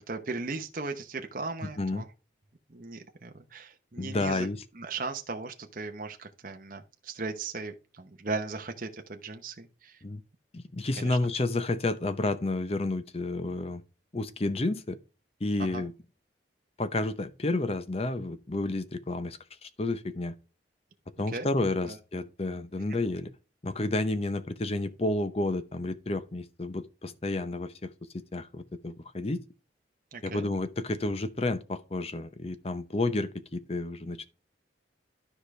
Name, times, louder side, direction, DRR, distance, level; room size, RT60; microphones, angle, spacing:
voice 1, 0.1-2.1 2.7-4.5 4.7-10.0 11.0-11.2 15.6-15.9 21.3-21.5 21.8-22.0 30.1-30.5, right 3 dB, 45° right, 0.9 m, -37 dB
voice 2, 1.6-2.0 4.0-4.6 10.0-10.2 10.5-13.8 14.1-15.0 15.4-15.9 16.8-20.3 21.2-23.3 23.6-27.9 28.3-29.4 30.2-34.2, left 2 dB, 30° left, 0.7 m, -31 dB
12.5 x 4.9 x 3.3 m
head